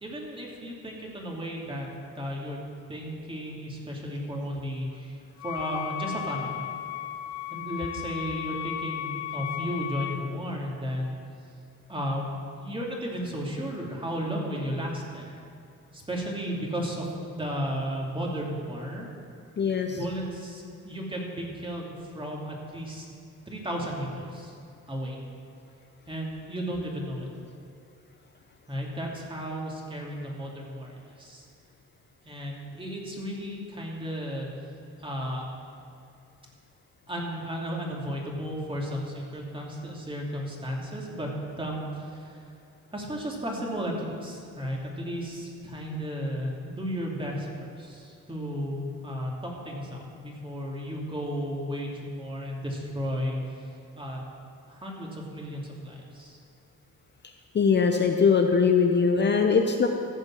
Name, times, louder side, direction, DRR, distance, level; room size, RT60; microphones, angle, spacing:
voice 1, 0.0-1.9 2.1-2.6 2.9-6.6 7.5-11.2 11.9-15.4 15.9-19.1 19.8-23.1 23.5-24.5 24.9-25.2 26.1-27.3 28.7-31.5 32.3-34.5 35.0-35.5 37.1-41.3 41.6-42.4 42.9-53.6 54.0-54.2 54.7-56.4, equal, 15° right, -2 dB, 2.6 m, -34 dB
Wind instrument woodwind instrument, 5.4-10.3, left 12 dB, 65° left, 0.6 m, -35 dB
voice 2, 19.6-20.0 57.5-59.9, left 5 dB, 35° left, 4 dB, 0.8 m, -21 dB
15.0 x 5.2 x 7.5 m, 2.5 s
cardioid pair, 90°, 30 cm